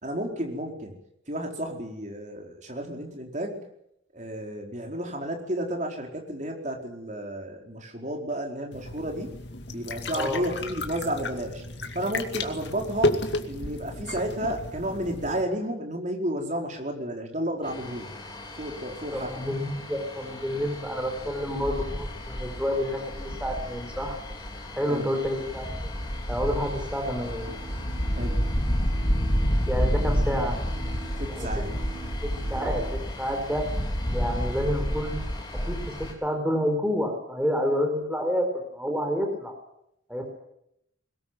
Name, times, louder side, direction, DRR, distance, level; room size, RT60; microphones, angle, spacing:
voice 1, 0.0-0.9 1.3-3.6 4.1-9.3 9.7-11.6 11.9-13.2 13.5-18.1 18.5-19.5 24.9-25.1 28.1-28.4 31.2-31.7, right 1 dB, 40° right, 2 dB, 4.6 m, -32 dB
sound 1, 8.7-15.4, left 2 dB, 60° left, 2.3 m, -32 dB
voice 2, 10.1-10.5 19.1-24.2 24.7-25.9 26.3-27.4 29.7-30.6 31.3-31.5 32.2-33.6 34.1-35.2 35.7-38.5 38.7-39.5 40.1-40.3, equal, 5° right, 3 dB, 4.3 m, -29 dB
sound 2, 17.6-36.1, equal, 25° left, 4.2 m, -30 dB
sound 3, 27.4-32.9, right 4 dB, 75° right, 5.3 m, -45 dB
22.0 x 19.5 x 9.4 m, 0.77 s
head